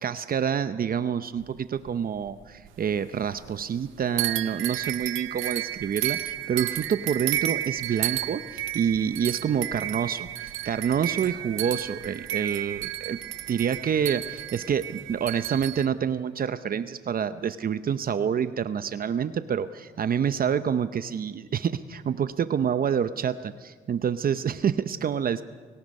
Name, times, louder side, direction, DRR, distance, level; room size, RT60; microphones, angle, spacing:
voice 1, 0.0-13.2 13.5-25.4, right 8 dB, 45° right, 12 dB, 0.7 m, -27 dB
sound 1, 1.4-2.9 3.2-3.9 4.2-15.9, right 14 dB, 85° right, 0.8 m, -32 dB
29.5 x 18.0 x 5.4 m, 1.5 s
cardioid pair, 90°, 20 cm